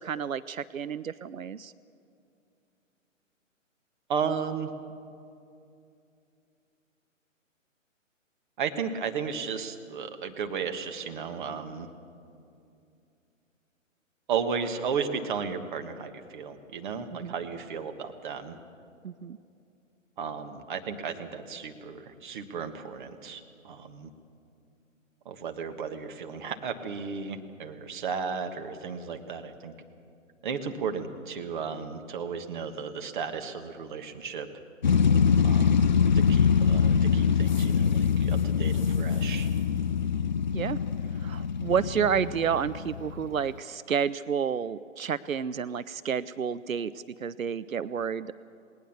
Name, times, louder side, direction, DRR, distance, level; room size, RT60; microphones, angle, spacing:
voice 1, 0.0-1.7 17.1-17.3 19.0-19.4 40.5-40.8 41.2-46.9 47.2-48.3, right 7 dB, 90° right, 17 dB, 0.6 m, -30 dB
voice 2, 4.1-4.7 8.6-11.9 14.3-18.6 20.2-24.1 25.2-29.7 30.4-34.5 35.4-39.5, right 6 dB, 35° right, 7 dB, 1.5 m, -34 dB
sound 1, 34.8-43.5, left 6 dB, 35° left, 0.4 m, -24 dB
19.0 x 19.0 x 7.2 m, 2.5 s
figure-of-eight pair, 135°, 40 cm